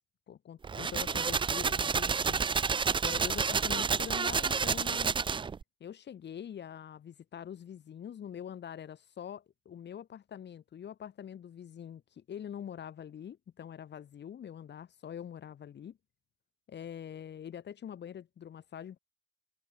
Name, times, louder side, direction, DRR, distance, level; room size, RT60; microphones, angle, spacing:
voice 1, 0.3-2.4 3.0-5.2 5.8-16.0 16.7-19.0, left 9 dB, 60° left, 6.5 m, -44 dB
sound 1, 0.6-5.6, right 5 dB, 25° right, 0.5 m, -30 dB
cardioid pair, 90°, 20 cm